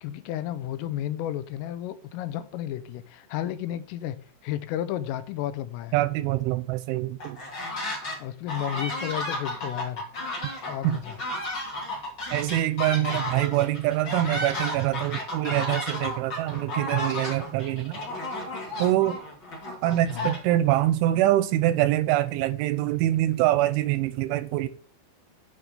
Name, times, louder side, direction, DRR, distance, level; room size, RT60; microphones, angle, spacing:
voice 1, 0.0-6.0 8.2-10.0 10.7-11.2 20.1-20.3, left 12 dB, 85° left, 3.4 m, -32 dB
voice 2, 5.9-7.4 10.8-11.0 12.3-18.0 18.8-19.2 19.8-24.7, right 14 dB, 85° right, 2.9 m, -24 dB
sound 1, 7.2-8.2 8.5-20.8, left 1 dB, 30° left, 2.8 m, -33 dB
9.6 x 5.9 x 6.6 m
omnidirectional pair, 5.8 m